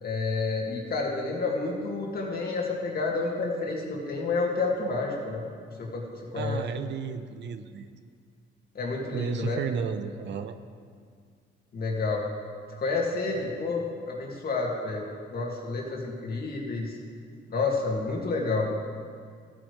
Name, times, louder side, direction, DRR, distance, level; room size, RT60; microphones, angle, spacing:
voice 1, 0.0-5.4 5.8-6.6 8.7-9.6 11.7-12.3 12.8-15.1 15.3-17.0 17.5-18.7, left 3 dB, 50° left, -1 dB, 2.2 m, -29 dB
voice 2, 6.3-8.0 9.1-10.6, right 6 dB, 65° right, 10 dB, 0.7 m, -33 dB
15.0 x 9.5 x 3.3 m, 2.1 s
cardioid pair, 90°, 20 cm